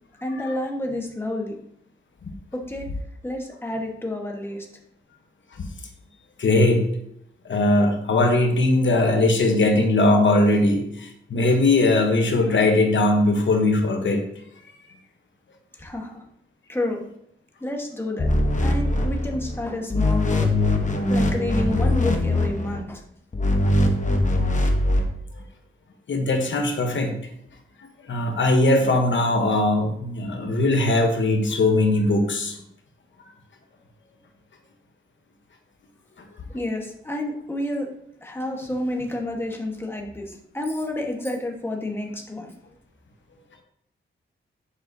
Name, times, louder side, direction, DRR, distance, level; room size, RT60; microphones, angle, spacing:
voice 1, 0.2-1.6 2.5-2.9 3.2-4.7 15.7-16.2 16.7-17.0 17.6-18.3 18.6-20.6 21.1-23.0 36.5-37.9 38.2-42.5, left 1 dB, 10° left, 0 dB, 1.3 m, -29 dB
voice 2, 6.4-6.8 7.4-14.2 26.1-27.1 28.1-32.6, left 2 dB, 65° left, 3 dB, 1.0 m, -20 dB
sound 1, 18.2-19.6 19.9-22.8 23.3-25.0, left 1 dB, 35° left, 1.0 m, -21 dB
7.5 x 6.1 x 2.7 m, 0.73 s
cardioid pair, 75°, 21 cm